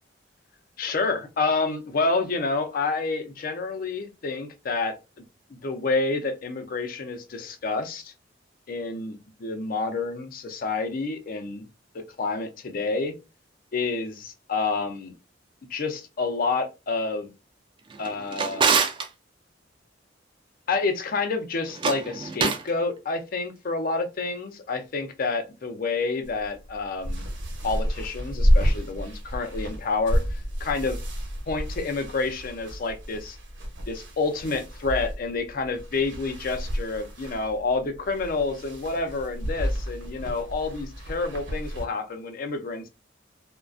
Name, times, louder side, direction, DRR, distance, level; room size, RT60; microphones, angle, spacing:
voice 1, 0.8-5.0 5.6-8.1 8.7-11.6 11.9-13.1 13.7-15.1 15.7-17.3 18.0-18.7 20.7-27.2 27.6-31.0 31.5-33.4 33.9-42.9, left 3 dB, 50° left, 0.5 m, -28 dB
Drawer open or close, 17.9-19.1 21.7-22.7, right 5 dB, 25° right, 0.3 m, -25 dB
sound 1, 26.2-41.9, equal, 70° right, 0.8 m, -30 dB
2.3 x 2.2 x 2.4 m
head